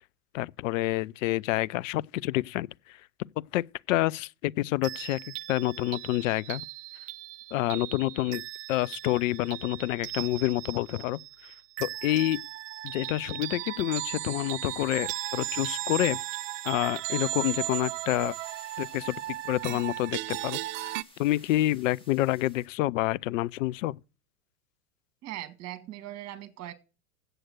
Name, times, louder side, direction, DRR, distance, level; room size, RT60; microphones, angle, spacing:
voice 1, 0.3-3.0 3.4-6.6 7.5-8.4 8.7-12.4 12.8-16.2 16.6-18.3 18.8-20.9 21.2-24.0, left 16 dB, 60° left, 0.5 m, -28 dB
sound 1, 4.8-21.0, right 17 dB, 55° right, 0.6 m, -37 dB
sound 2, 14.7-22.7, left 1 dB, 10° left, 2.6 m, -56 dB
voice 2, 25.2-26.7, right 14 dB, 35° right, 2.0 m, -40 dB
7.9 x 7.8 x 7.6 m
hypercardioid pair, 105°, 45 cm